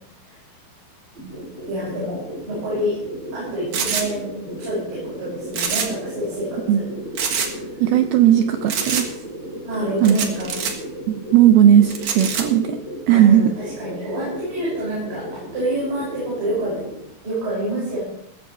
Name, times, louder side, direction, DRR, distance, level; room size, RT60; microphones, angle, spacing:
sound 1, 1.1-17.0, equal, 35° right, 5.5 m, -34 dB
voice 1, 1.7-3.0 3.3-6.9 7.8-7.9 9.7-10.6 13.1-16.8 17.2-18.0, right 1 dB, 70° right, -7 dB, 8.9 m, -28 dB
sound 2, 3.7-4.1 5.5-6.1 6.3-6.4 7.2-7.5 8.7-9.1 10.0-10.7 11.9-12.4, right 6 dB, 55° right, 2.5 m, -25 dB
voice 2, 7.8-9.2 10.0-10.2 11.1-12.8 13.1-13.5, right 10 dB, 90° right, 8 dB, 2.2 m, -16 dB
18.5 x 14.0 x 3.4 m, 0.75 s
omnidirectional pair, 5.2 m